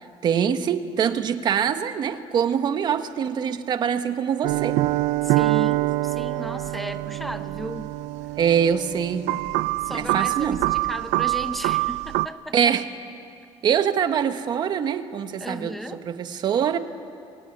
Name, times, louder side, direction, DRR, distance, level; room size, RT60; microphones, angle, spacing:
voice 1, 0.2-4.8 8.4-9.3 9.9-10.6 12.5-12.8 13.6-15.7 16.0-16.8, right 8 dB, 40° right, 9 dB, 1.3 m, -24 dB
sound 1, 4.4-12.3, right 18 dB, 80° right, 0.6 m, -25 dB
voice 2, 5.2-8.0 9.8-12.7 15.4-16.0, equal, ahead, 8 dB, 0.9 m, -35 dB
27.5 x 21.5 x 9.8 m, 2.5 s
cardioid pair, 165°, 12 cm